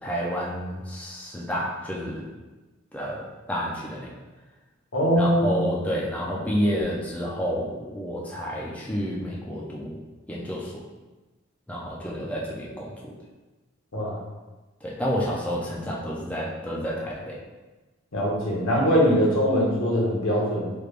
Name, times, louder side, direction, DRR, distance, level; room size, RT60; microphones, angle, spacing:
voice 1, 0.0-2.2 2.9-4.1 5.2-10.0 10.3-10.7 11.7-13.1 14.8-17.4 19.1-19.2, equal, 5° left, -5 dB, 0.4 m, -30 dB
voice 2, 4.9-5.7 13.9-14.2 18.1-20.7, equal, 80° left, -4 dB, 1.0 m, -22 dB
3.3 x 3.2 x 2.4 m, 1.2 s
head